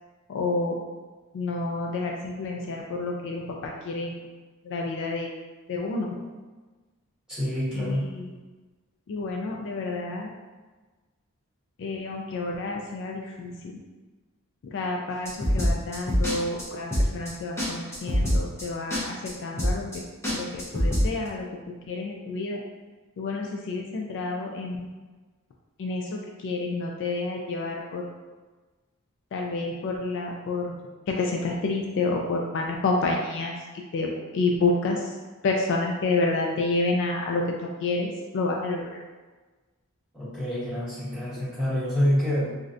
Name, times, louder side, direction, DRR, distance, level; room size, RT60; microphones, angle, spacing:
voice 1, 0.3-0.8 1.3-4.1 4.7-5.3 5.7-6.2 7.8-8.3 9.1-10.3 11.8-13.5 14.7-19.9 20.3-22.6 23.2-24.9 25.8-28.1 29.3-30.7 31.1-33.5 33.9-35.0 35.4-37.4 37.8-39.0, left 3 dB, 60° left, 0 dB, 0.3 m, -29 dB
voice 2, 7.3-8.2 40.1-42.6, equal, 5° right, -13 dB, 1.4 m, -27 dB
sound 1, 15.2-16.3 16.6-16.7 16.9-17.3 17.6-17.7 17.9-18.6 18.9-19.3 19.6-20.0 20.2-21.1, equal, 10° left, 0.8 m, -24 dB
3.1 x 2.5 x 2.5 m, 1.3 s
head